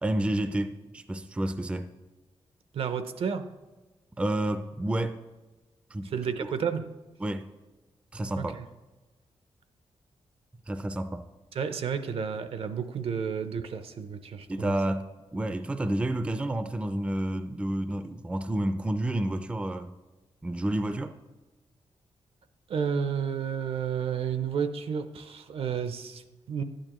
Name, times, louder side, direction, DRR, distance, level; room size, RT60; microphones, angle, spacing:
voice 1, 0.0-1.9 4.2-5.2 5.9-6.1 7.2-7.5 8.1-8.5 10.7-11.2 14.5-19.9 20.4-21.1, right 1 dB, 10° right, 0.3 m, -30 dB
voice 2, 2.7-3.5 6.0-6.9 8.5-8.6 11.5-14.7 22.7-26.6, right 7 dB, 70° right, 0.6 m, -31 dB
11.5 x 8.9 x 3.0 m
wide cardioid pair, 150°, 10 cm